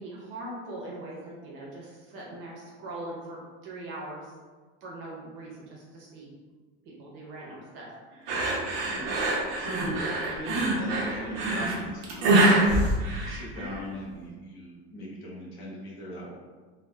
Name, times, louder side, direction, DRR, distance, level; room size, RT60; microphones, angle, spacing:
voice 1, 0.0-4.3 4.8-6.3 6.8-8.5 13.5-13.7, right 1 dB, 40° right, -3 dB, 0.8 m, -41 dB
sound 1, 8.3-13.8, right 2 dB, 80° right, 0.8 m, -25 dB
Hiss, 8.8-14.3, equal, 10° right, 0.8 m, -36 dB
voice 2, 8.9-12.8 13.2-16.3, equal, 40° left, -4 dB, 0.8 m, -39 dB
3.3 x 2.3 x 2.2 m, 1.4 s
cardioid pair, 165°, 31 cm